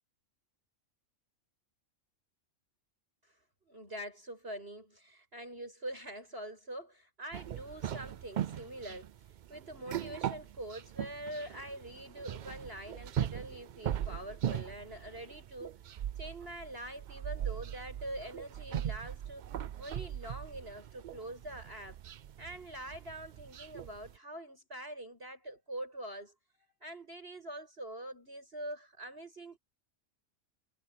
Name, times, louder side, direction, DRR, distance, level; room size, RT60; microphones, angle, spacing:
voice 1, 3.6-9.1 9.5-15.8 16.2-19.5 19.8-22.0 22.4-26.3 26.8-29.6, right 1 dB, 50° right, 8.3 m, -44 dB
sound 1, 7.3-24.2, right 10 dB, 75° right, 0.4 m, -40 dB
omnidirectional pair, 1.4 m